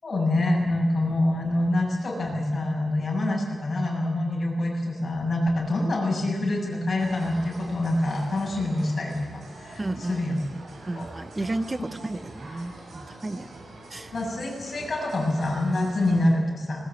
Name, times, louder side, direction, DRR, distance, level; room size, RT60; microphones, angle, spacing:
voice 1, 0.0-10.4 10.9-11.0 14.1-16.8, left 1 dB, 40° left, -1 dB, 7.5 m, -26 dB
sound 1, 7.0-16.3, right 2 dB, 65° right, 6.4 m, -44 dB
voice 2, 9.8-10.2 10.9-13.6 13.9-14.1, right 2 dB, 20° right, 12 dB, 0.9 m, -32 dB
20.0 x 20.0 x 8.2 m, 1.5 s
wide cardioid pair, 150°, 0 cm